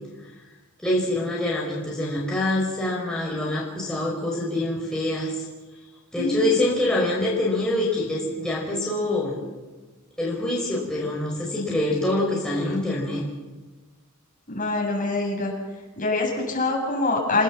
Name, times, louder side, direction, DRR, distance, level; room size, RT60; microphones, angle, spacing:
voice 1, 0.8-5.5 6.1-9.4 10.2-13.3, left 1 dB, 5° left, -5 dB, 5.0 m, -25 dB
voice 2, 6.1-6.5 14.5-15.5 16.0-17.4, left 2 dB, 40° left, -2 dB, 8.0 m, -24 dB
29.0 x 18.0 x 7.4 m, 1.2 s
head